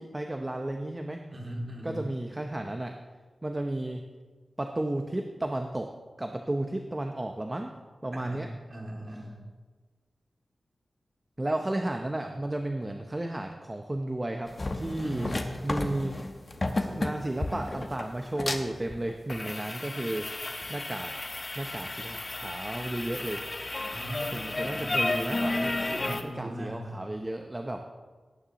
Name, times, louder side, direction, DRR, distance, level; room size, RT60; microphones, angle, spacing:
voice 1, 0.0-1.2 1.8-2.9 3.4-4.0 4.6-5.9 6.2-7.7 8.0-8.5 11.4-15.3 15.6-16.1 16.7-20.3 20.7-21.1 21.6-23.4 24.3-25.7 26.2-27.8, right 1 dB, 25° right, 4 dB, 0.7 m, -33 dB
voice 2, 1.3-2.0 8.1-9.4 15.0-15.4 23.9-25.0 25.6-27.0, right 1 dB, 40° right, -1 dB, 2.5 m, -39 dB
sound 1, 14.5-26.2, left 2 dB, 35° left, 1.0 m, -33 dB
18.5 x 9.6 x 3.0 m, 1.4 s
wide cardioid pair, 90°, 0 cm